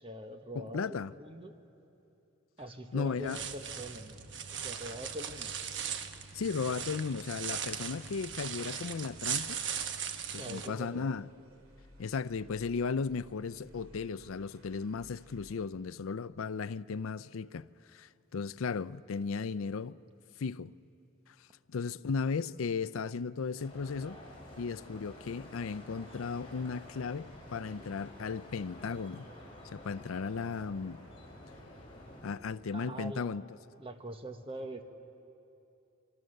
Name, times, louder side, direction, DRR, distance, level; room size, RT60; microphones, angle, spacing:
voice 1, 0.0-1.5 2.6-5.5 10.4-11.1 32.7-33.4 33.8-34.8, right 1 dB, 25° right, 1.1 m, -43 dB
voice 2, 0.6-1.1 2.9-3.4 6.3-9.6 10.3-11.3 12.0-20.0 20.4-20.7 21.7-24.2 24.6-29.3 29.7-31.0 32.2-33.4, left 5 dB, 85° left, 0.5 m, -35 dB
sound 1, 3.2-10.7, right 7 dB, 60° right, 1.2 m, -39 dB
sound 2, 4.0-15.7, equal, 90° right, 3.0 m, -61 dB
sound 3, 23.6-32.4, left 1 dB, 25° left, 6.0 m, -50 dB
25.5 x 25.5 x 6.6 m
head